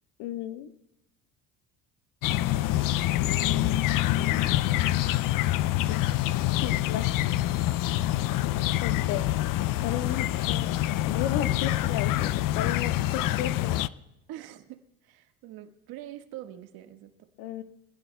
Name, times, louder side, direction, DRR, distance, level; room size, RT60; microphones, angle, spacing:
voice 1, 0.2-0.7 5.9-6.0 6.6-7.1 8.8-9.2 9.8-10.7 11.0-13.9 17.4-17.6, left 11 dB, 80° left, 9 dB, 1.4 m, -33 dB
sound 1, 2.2-13.9, left 14 dB, 55° left, 0.6 m, -26 dB
voice 2, 14.3-17.3, right 13 dB, 70° right, 6 dB, 1.7 m, -44 dB
25.5 x 17.0 x 2.3 m, 0.92 s
supercardioid pair, 105°, 38 cm